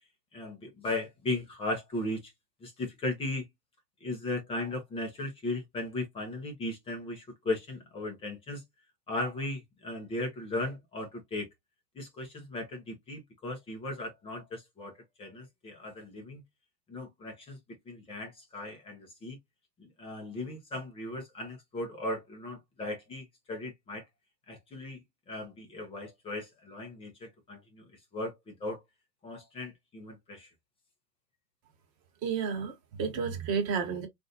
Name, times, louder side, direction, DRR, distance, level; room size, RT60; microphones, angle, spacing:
voice 1, 0.3-2.3 2.6-3.5 4.0-8.6 9.1-11.5 12.0-16.4 16.9-17.6 17.9-19.4 19.8-24.1 24.5-25.0 25.3-28.8 29.2-30.5, left 2 dB, 10° left, 0.7 m, -37 dB
voice 2, 32.2-34.1, right 6 dB, 35° right, 1.3 m, -31 dB
3.9 x 2.6 x 2.5 m
hypercardioid pair, 140°, 50 cm